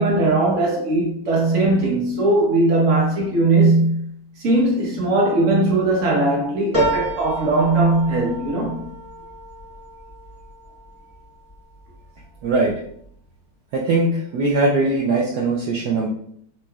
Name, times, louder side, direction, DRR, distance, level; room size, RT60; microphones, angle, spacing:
voice 1, 0.0-4.1 4.4-8.9, right 2 dB, 45° right, 1.2 m, -19 dB
sound 1, 6.7-11.5 12.0-12.7 13.0-13.1, right 1 dB, 10° left, 0.7 m, -30 dB
voice 2, 12.4-12.8 13.7-16.1, right 2 dB, 70° right, 1.0 m, -20 dB
5.9 x 3.0 x 2.3 m
omnidirectional pair, 2.3 m